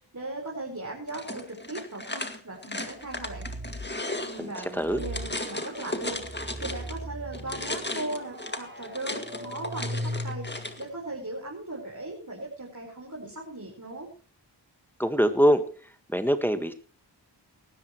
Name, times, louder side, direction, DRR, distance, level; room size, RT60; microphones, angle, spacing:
voice 1, 0.1-3.5 4.3-6.2 6.6-10.5 10.8-14.1, right 2 dB, 40° right, -1 dB, 4.6 m, -38 dB
sound 1, 1.1-7.0 7.3-10.8, left 2 dB, 25° left, 1.9 m, -36 dB
sound 2, 3.0-3.9 4.8-10.8, equal, 25° right, 5.5 m, -39 dB
voice 2, 4.4-5.0 15.0-15.6 16.1-16.7, equal, 5° left, 8 dB, 1.6 m, -23 dB
19.5 x 13.0 x 3.1 m, 0.38 s
cardioid pair, 40°, 43 cm